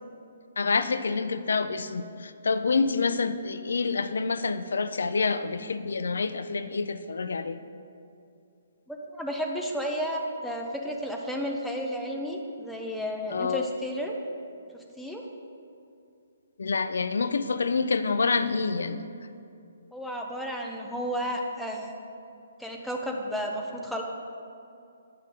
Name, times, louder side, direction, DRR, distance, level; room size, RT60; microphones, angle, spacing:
voice 1, 0.6-7.6 13.3-13.7 16.6-19.1, left 4 dB, 85° left, 11 dB, 0.4 m, -27 dB
voice 2, 8.9-14.1 15.0-15.2 19.9-21.9 22.6-24.0, equal, ahead, -1 dB, 0.4 m, -32 dB
9.1 x 5.5 x 3.7 m, 2.5 s
hypercardioid pair, 175°, 0 cm